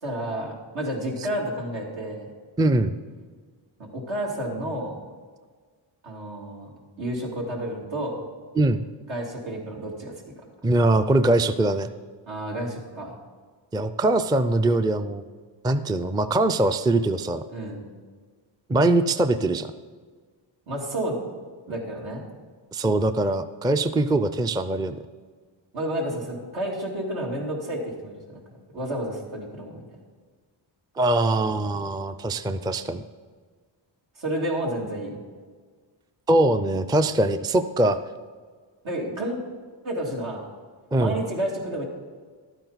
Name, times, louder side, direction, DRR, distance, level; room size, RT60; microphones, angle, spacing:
voice 1, 0.0-2.3 3.8-5.0 6.0-6.7 7.0-8.2 9.1-10.2 12.3-13.2 17.5-17.8 20.7-21.2 21.7-22.2 25.7-28.4 28.7-29.8 34.2-35.2 38.8-39.4 39.8-40.4 41.0-41.8, right 1 dB, 80° right, -2 dB, 2.7 m, -30 dB
voice 2, 2.6-3.0 8.6-8.8 10.6-11.9 13.7-15.2 15.6-17.4 18.7-19.7 22.7-25.0 31.0-33.0 36.3-38.0 40.9-41.2, right 2 dB, 10° right, 10 dB, 0.4 m, -22 dB
12.0 x 9.1 x 4.0 m, 1.5 s
cardioid pair, 85°, 46 cm